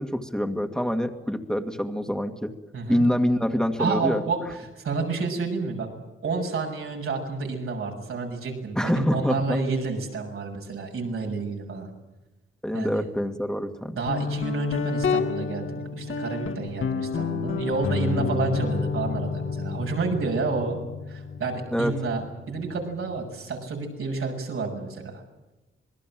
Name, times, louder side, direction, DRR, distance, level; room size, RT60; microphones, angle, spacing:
voice 1, 0.0-2.5 2.9-4.2 8.8-9.6 12.6-14.0 21.7-21.9, equal, 5° left, 5 dB, 2.0 m, -25 dB
voice 2, 3.8-4.4 4.8-5.9 6.2-11.9 12.7-13.0 13.9-20.8 21.1-25.2, right 4 dB, 85° right, 1 dB, 7.0 m, -29 dB
Guitar, 14.1-23.5, left 5 dB, 75° left, 2.3 m, -30 dB
27.0 x 21.0 x 7.7 m, 1.0 s
wide cardioid pair, 100°, 21 cm